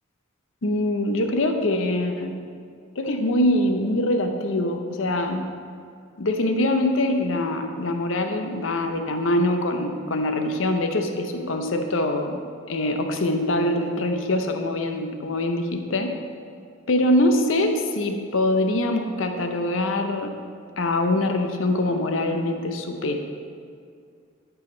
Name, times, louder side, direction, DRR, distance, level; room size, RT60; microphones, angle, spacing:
voice 1, 0.6-2.3 3.0-5.5 6.2-12.4 12.7-16.1 16.9-20.3 20.8-23.2, left 1 dB, 75° left, 5 dB, 0.7 m, -23 dB
11.5 x 4.9 x 3.9 m, 2.3 s
head